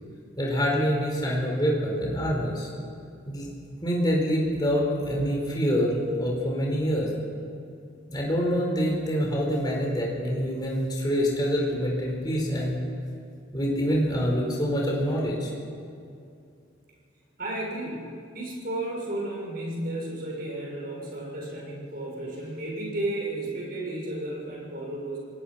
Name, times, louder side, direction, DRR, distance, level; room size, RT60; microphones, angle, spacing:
voice 1, 0.4-2.7 3.2-3.5 3.8-7.1 8.1-12.8 13.5-15.5, equal, 20° left, -2 dB, 4.4 m, -26 dB
voice 2, 17.4-25.2, right 1 dB, 50° right, -2 dB, 6.6 m, -33 dB
26.5 x 19.0 x 5.8 m, 2.5 s
head